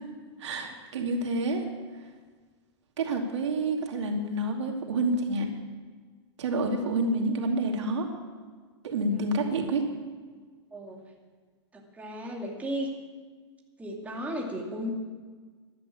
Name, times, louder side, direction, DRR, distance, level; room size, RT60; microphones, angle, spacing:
voice 1, 0.4-1.7 3.0-5.5 6.4-8.1 8.8-9.8, right 2 dB, 80° right, 2 dB, 2.6 m, -28 dB
voice 2, 10.7-11.0 11.9-12.9 13.8-14.9, equal, 10° right, -1 dB, 2.6 m, -34 dB
12.5 x 11.5 x 8.6 m, 1.5 s
hypercardioid pair, 135°, 15 cm